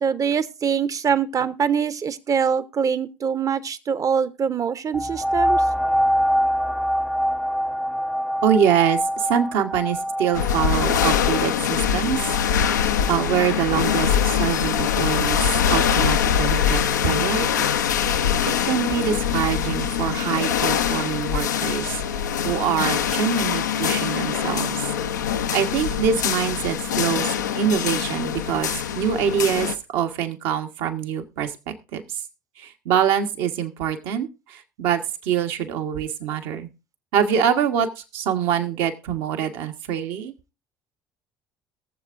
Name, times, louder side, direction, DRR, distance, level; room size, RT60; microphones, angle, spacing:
voice 1, 0.0-5.6, right 7 dB, 35° right, 16 dB, 0.9 m, -24 dB
sound 1, 4.9-14.2 14.8-14.9, equal, ahead, 0.7 m, -25 dB
voice 2, 8.4-12.3 13.1-17.7 18.6-22.0 22.4-24.8 25.3-27.3 27.5-28.7 28.9-32.2 32.6-36.7 37.1-40.3, right 8 dB, 65° right, 5 dB, 1.4 m, -24 dB
sound 2, 10.3-29.7, left 8 dB, 85° left, 0.6 m, -23 dB
22.0 x 7.4 x 2.6 m, 0.29 s
hypercardioid pair, 60°, 10 cm